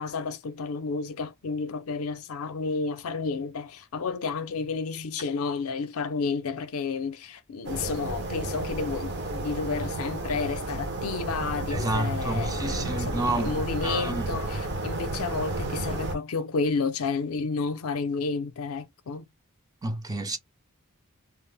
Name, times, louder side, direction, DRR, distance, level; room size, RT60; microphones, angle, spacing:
voice 1, 0.0-19.2, left 4 dB, 70° left, 0.5 m, -31 dB
sound 1, 7.6-16.2, right 2 dB, 50° right, 0.7 m, -32 dB
voice 2, 11.7-14.4 19.8-20.4, right 2 dB, 15° right, 0.4 m, -30 dB
2.3 x 2.0 x 3.3 m
head